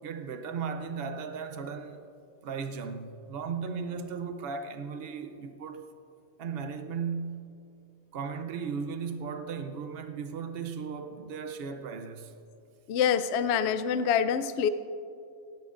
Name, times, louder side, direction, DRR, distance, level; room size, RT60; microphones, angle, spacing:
voice 1, 0.0-2.1 2.4-5.9 6.4-7.5 8.1-12.3, right 5 dB, 70° right, 0.5 m, -36 dB
voice 2, 12.9-14.7, left 8 dB, 75° left, 0.6 m, -26 dB
17.5 x 16.5 x 2.5 m
omnidirectional pair, 1.7 m